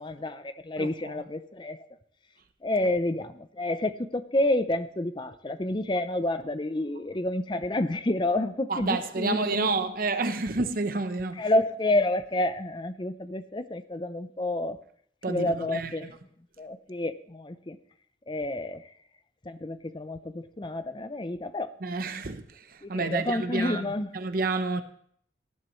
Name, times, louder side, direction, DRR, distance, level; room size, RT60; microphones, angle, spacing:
voice 1, 0.0-1.9 2.6-9.7 11.4-14.8 15.3-16.2 16.6-17.8 18.3-18.8 19.4-21.7 22.8-24.1, left 1 dB, 25° left, 0.6 m, -29 dB
voice 2, 0.8-1.2 8.7-11.5 15.2-16.1 21.8-23.9 24.1-24.8, right 3 dB, 50° right, 0.8 m, -29 dB
18.0 x 11.0 x 3.1 m
head